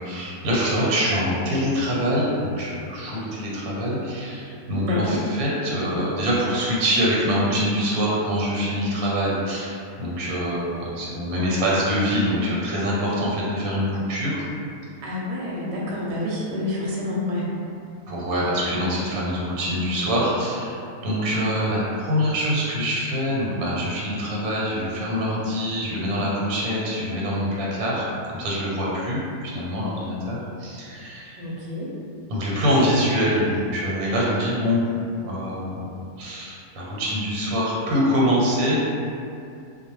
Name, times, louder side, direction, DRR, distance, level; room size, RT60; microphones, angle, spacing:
voice 1, 0.0-14.4 18.1-31.4 32.3-34.8 35.2-35.8 36.2-38.8, equal, 90° right, -5 dB, 1.1 m, -24 dB
voice 2, 4.8-5.2 15.0-17.4 31.4-31.9, left 2 dB, 65° right, -5 dB, 0.8 m, -28 dB
2.3 x 2.1 x 3.0 m, 2.6 s
omnidirectional pair, 1.5 m